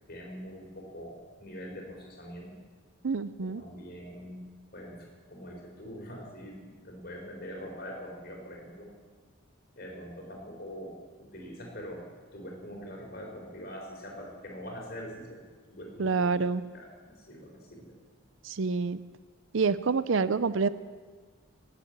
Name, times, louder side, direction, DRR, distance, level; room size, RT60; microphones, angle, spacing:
voice 1, 0.1-2.6 3.4-4.4 4.7-8.9 9.8-12.0 12.3-15.4 15.7-18.0, equal, 45° left, -1 dB, 4.4 m, -43 dB
voice 2, 3.0-3.6 16.0-16.6 18.4-19.0 19.5-20.7, right 4 dB, 70° right, 16 dB, 0.5 m, -27 dB
19.5 x 8.3 x 8.0 m, 1.5 s
head